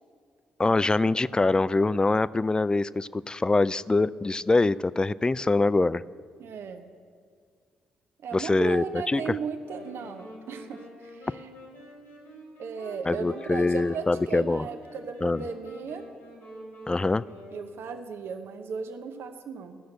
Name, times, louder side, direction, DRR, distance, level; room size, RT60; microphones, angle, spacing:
voice 1, 0.6-6.0 8.3-9.2 13.1-14.7 15.2-15.4 16.9-17.2, left 3 dB, 20° left, 19 dB, 0.3 m, -24 dB
voice 2, 6.4-6.8 8.2-11.5 12.6-16.1 17.5-19.8, right 5 dB, 60° right, 6 dB, 0.8 m, -36 dB
sound 1, 9.6-18.1, left 1 dB, 85° left, 2.8 m, -46 dB
13.5 x 6.4 x 8.0 m, 2.1 s
hypercardioid pair, 50°, 4 cm